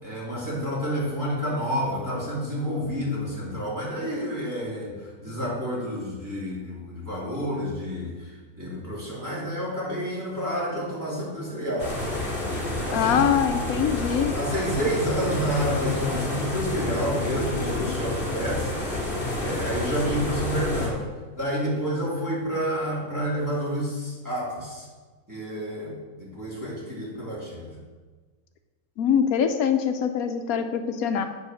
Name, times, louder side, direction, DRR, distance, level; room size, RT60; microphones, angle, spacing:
voice 1, 0.0-11.9 12.8-13.2 14.3-18.7 19.3-21.0 21.3-24.9 25.3-27.7, equal, 10° right, -8 dB, 3.1 m, -29 dB
sound 1, 11.8-20.9, left 1 dB, 35° left, 2.5 m, -29 dB
voice 2, 12.9-14.3 29.0-31.3, left 8 dB, 80° left, 7 dB, 1.1 m, -23 dB
8.5 x 4.9 x 6.3 m, 1.3 s
omnidirectional pair, 1.5 m